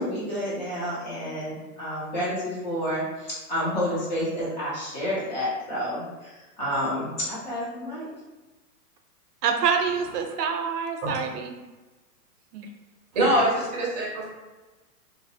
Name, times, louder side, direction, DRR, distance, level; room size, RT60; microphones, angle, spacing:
voice 1, 0.0-8.1, equal, 30° left, -7 dB, 0.5 m, -30 dB
voice 2, 9.4-11.6 12.5-12.7, right 6 dB, 80° right, 5 dB, 0.5 m, -26 dB
voice 3, 13.1-14.3, right 1 dB, 30° right, -4 dB, 0.5 m, -23 dB
2.3 x 2.0 x 2.6 m, 1.2 s
hypercardioid pair, 155°, 47 cm